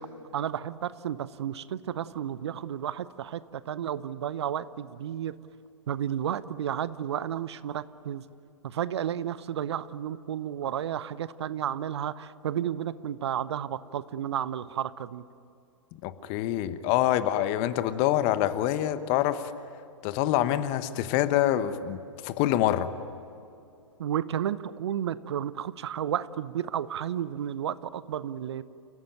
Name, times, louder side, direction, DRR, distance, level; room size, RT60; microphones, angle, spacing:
voice 1, 0.3-5.4 5.9-8.2 8.6-15.2 24.0-28.6, right 10 dB, 60° right, 0.8 m, -32 dB
voice 2, 16.0-19.5 20.0-22.9, left 12 dB, 35° left, 1.2 m, -26 dB
29.5 x 17.0 x 9.1 m
figure-of-eight pair, 115°, 16 cm